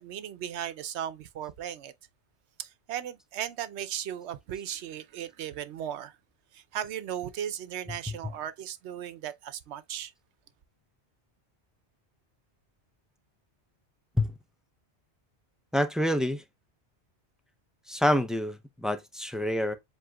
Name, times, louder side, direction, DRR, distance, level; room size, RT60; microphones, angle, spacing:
voice 1, 0.0-1.9 2.6-6.1 6.5-10.1, right 10 dB, 85° right, 0.9 m, -36 dB
voice 2, 15.7-16.4 17.9-19.7, left 1 dB, ahead, 0.4 m, -27 dB
7.6 x 2.8 x 2.2 m
omnidirectional pair, 1.1 m